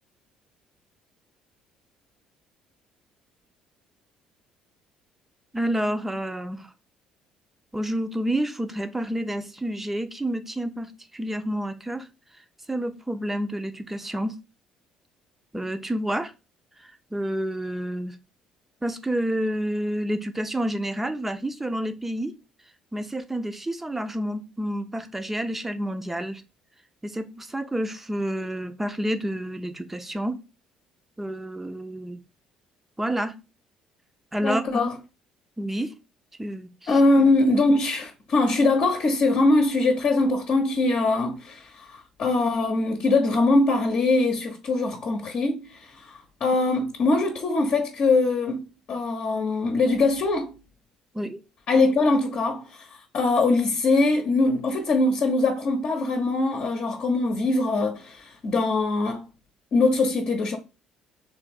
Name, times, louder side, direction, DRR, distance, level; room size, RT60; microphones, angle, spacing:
voice 1, 5.5-6.7 7.7-12.1 12.7-14.4 15.5-16.3 16.8-18.2 18.8-22.3 22.9-26.4 27.0-30.4 31.2-32.2 33.0-33.4 34.3-34.8 35.6-35.9 36.4-36.9 51.1-51.4, right 1 dB, 10° right, 0.7 m, -29 dB
voice 2, 34.4-34.9 36.9-48.6 48.9-50.5 51.7-52.9 53.1-59.2 59.7-60.6, left 2 dB, 50° left, 0.9 m, -22 dB
3.4 x 3.2 x 4.8 m
figure-of-eight pair, 50°, 2 cm